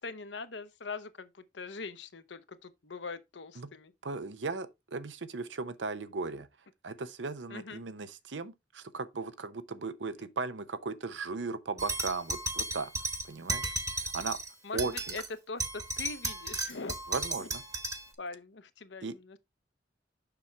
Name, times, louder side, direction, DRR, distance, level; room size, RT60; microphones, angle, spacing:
voice 1, 0.0-3.9 7.5-7.8 14.6-17.0 17.4-17.5 18.2-19.4, left 4 dB, 75° left, 0.9 m, -42 dB
voice 2, 4.0-6.5 6.8-12.9 13.3-13.7 14.1-14.4 14.7-14.9 17.1-17.6 19.0-19.1, right 4 dB, 80° right, 0.8 m, -37 dB
sound 1, 11.8-14.5 14.8-15.3 15.6-18.1, right 2 dB, 20° right, 1.1 m, -35 dB
6.9 x 5.9 x 3.4 m
head